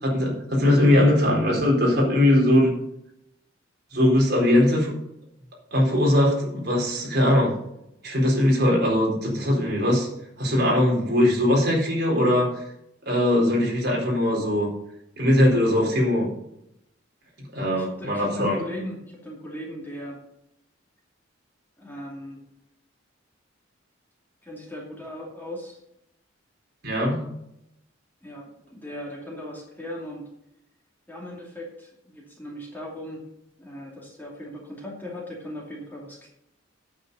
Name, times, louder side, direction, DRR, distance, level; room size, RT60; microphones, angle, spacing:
voice 1, 0.0-2.7 3.9-4.9 5.7-7.5 8.0-10.1 10.4-12.6 13.1-14.7 15.2-16.3 17.5-18.6 26.8-27.2, left 1 dB, 50° right, -2 dB, 4.2 m, -20 dB
voice 2, 17.6-20.2 21.8-22.4 24.4-25.8 28.2-30.3 31.1-33.2 33.6-36.3, left 1 dB, 10° left, -3 dB, 2.6 m, -38 dB
9.0 x 7.8 x 6.9 m, 0.81 s
head